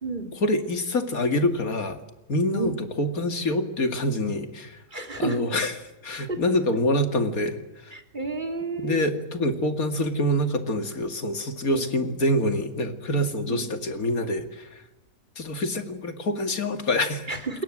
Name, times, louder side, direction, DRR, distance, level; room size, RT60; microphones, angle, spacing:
voice 1, 0.4-2.0 2.3-4.8 5.2-5.8 6.0-7.6 7.9-8.0 8.8-14.7 15.4-17.3, left 1 dB, 60° left, 7 dB, 2.8 m, -26 dB
voice 2, 4.9-5.4 6.3-6.4 7.9-9.1 11.7-11.8 13.5-13.7 17.3-17.6, right 3 dB, 30° right, 5 dB, 3.2 m, -31 dB
29.0 x 21.5 x 7.6 m, 0.95 s
omnidirectional pair, 1.7 m